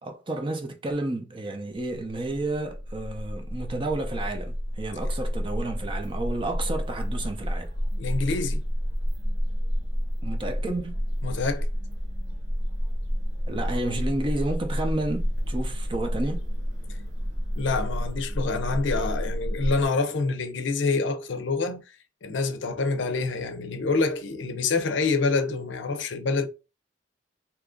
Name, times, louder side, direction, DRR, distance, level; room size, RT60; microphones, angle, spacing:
voice 1, 0.0-7.7 10.2-11.0 13.5-16.4, right 2 dB, 25° right, 0.5 m, -31 dB
sound 1, 1.9-19.9, equal, 55° right, 1.1 m, -30 dB
voice 2, 8.0-8.6 11.2-11.7 17.6-22.0 22.2-26.5, left 3 dB, 75° left, 0.5 m, -27 dB
2.8 x 2.5 x 3.6 m
head